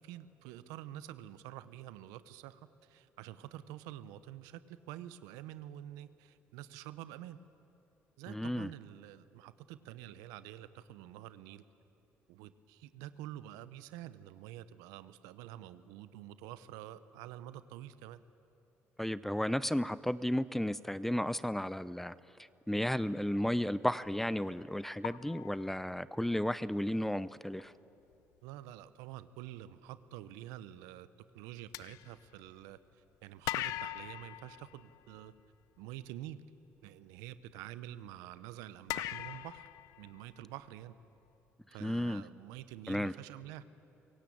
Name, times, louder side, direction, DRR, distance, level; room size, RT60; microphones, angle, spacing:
voice 1, 0.0-7.4 8.2-11.6 12.3-18.2 28.4-31.1 31.3-35.3 35.8-36.4 36.8-39.7 40.0-40.9 41.7-43.6, right 13 dB, 85° right, 14 dB, 0.8 m, -48 dB
voice 2, 8.3-8.7 19.0-22.1 22.7-27.7 41.8-42.2 42.9-43.1, left 1 dB, 5° left, 17 dB, 0.6 m, -33 dB
Pipe Reverb, 24.0-24.1 25.0-26.4 27.6-27.7 28.1-28.3 31.7-32.9 33.4-35.5 38.9-40.7, left 15 dB, 80° left, 0.5 m, -41 dB
23.5 x 17.0 x 8.7 m, 2.9 s
supercardioid pair, 70°, 6 cm